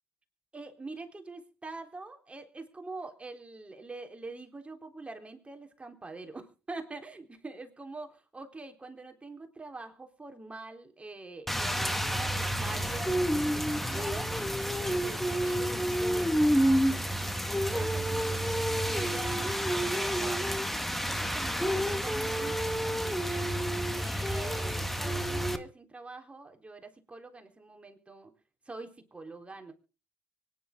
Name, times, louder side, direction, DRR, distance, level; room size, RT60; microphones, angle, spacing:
voice 1, 0.5-17.4 17.7-23.5 23.9-28.3 28.7-29.7, right 3 dB, 20° right, 4 dB, 3.8 m, -45 dB
Rain, 11.5-25.6, equal, 5° left, 1.9 m, -29 dB
24.5 x 11.0 x 3.8 m, 0.36 s
hypercardioid pair, 55°, 6 cm